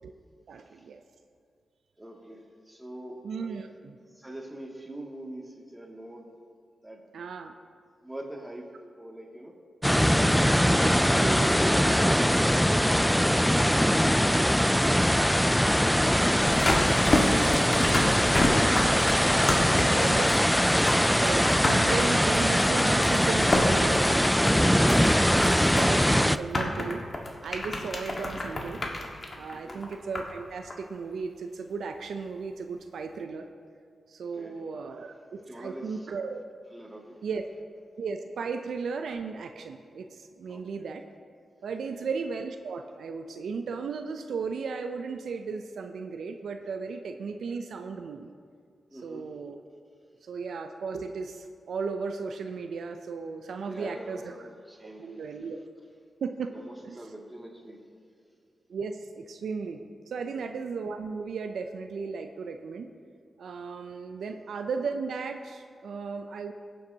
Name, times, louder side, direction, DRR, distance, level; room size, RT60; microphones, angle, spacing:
voice 1, 0.5-1.0 3.2-4.0 7.1-7.5 10.4-11.5 17.2-17.7 20.0-20.3 21.1-27.1 27.4-28.8 29.4-33.5 34.1-36.4 37.2-37.4 38.0-41.0 41.6-48.3 49.0-49.6 50.2-54.4 55.0-55.6 56.2-56.6 56.9-57.0 58.7-59.8 60.1-62.9 63.4-66.5, right 5 dB, 80° right, 6 dB, 0.5 m, -35 dB
voice 2, 2.0-3.5 4.1-6.3 6.8-7.0 8.0-9.6 13.5-15.0 19.4-20.2 28.0-28.3 29.5-29.8 34.2-34.6 35.4-36.1 36.7-37.2 40.5-40.8 41.9-42.1 48.9-49.3 53.6-55.5 56.5-57.9 60.3-60.5 64.3-64.4, right 1 dB, 10° right, -1 dB, 2.2 m, -44 dB
sound 1, 9.8-26.4, equal, 5° left, 0.3 m, -22 dB
sound 2, 16.4-30.4 30.7-30.8, left 1 dB, 50° left, 1.6 m, -30 dB
17.5 x 7.8 x 2.8 m, 2.2 s
cardioid pair, 50°, 0 cm